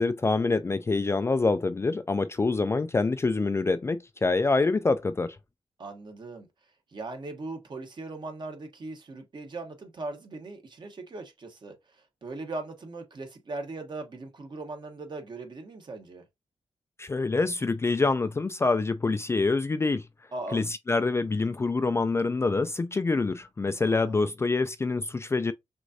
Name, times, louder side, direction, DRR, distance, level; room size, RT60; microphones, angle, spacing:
voice 1, 0.0-5.4 17.0-20.0 20.5-25.5, left 3 dB, 25° left, 0.3 m, -26 dB
voice 2, 5.8-6.5 6.9-16.2 20.3-20.6 23.8-24.3, right 2 dB, 45° right, 1.2 m, -39 dB
6.2 x 2.5 x 2.7 m
wide cardioid pair, 105°, 11 cm